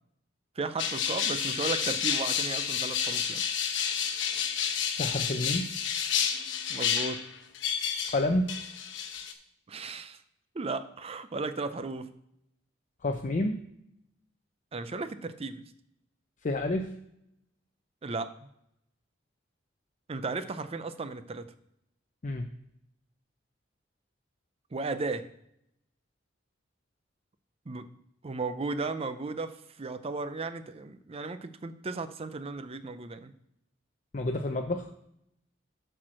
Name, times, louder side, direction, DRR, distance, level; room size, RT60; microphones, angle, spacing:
voice 1, 0.6-3.4 6.7-7.3 9.7-10.2 10.5-12.2 14.7-15.6 18.0-18.3 20.1-21.5 24.7-25.3 27.7-27.9 28.2-33.3, right 3 dB, 30° right, 12 dB, 0.5 m, -35 dB
sound 1, 0.8-8.2 8.5-9.3, left 7 dB, 70° left, 0.9 m, -30 dB
voice 2, 5.0-5.7 8.1-8.6 13.0-13.6 16.4-17.0 22.2-22.5 34.1-34.9, left 2 dB, 40° left, 4 dB, 0.5 m, -29 dB
8.5 x 4.5 x 6.2 m, 0.77 s
head